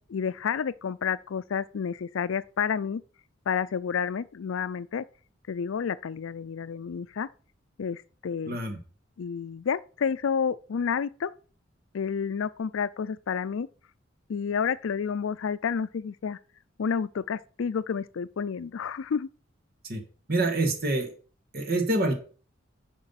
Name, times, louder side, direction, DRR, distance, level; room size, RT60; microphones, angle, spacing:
voice 1, 0.1-3.0 3.5-5.0 5.5-7.3 7.8-8.6 9.2-11.3 11.9-13.7 14.3-16.4 16.8-19.3, left 6 dB, 75° left, 0.4 m, -30 dB
voice 2, 8.5-8.8 19.8-20.0 20.3-21.1 21.5-22.1, right 2 dB, 50° right, 1.9 m, -26 dB
9.7 x 5.0 x 5.8 m
head